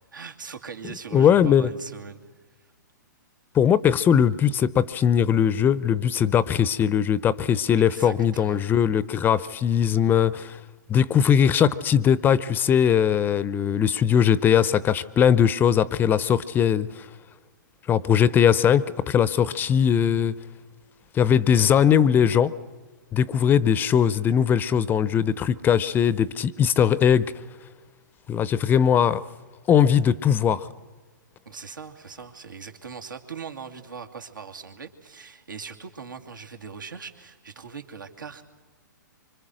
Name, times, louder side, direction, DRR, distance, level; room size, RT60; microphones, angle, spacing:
voice 1, 0.1-2.2 7.8-8.6 31.4-38.4, right 5 dB, 80° right, 3 dB, 2.7 m, -40 dB
voice 2, 1.1-1.7 3.5-10.6 10.9-17.1 17.9-20.4 21.1-22.5 23.1-27.3 28.3-29.2 29.7-30.7, left 8 dB, 20° left, 18 dB, 0.7 m, -20 dB
25.5 x 25.5 x 6.4 m, 1.3 s
hypercardioid pair, 120°, 10 cm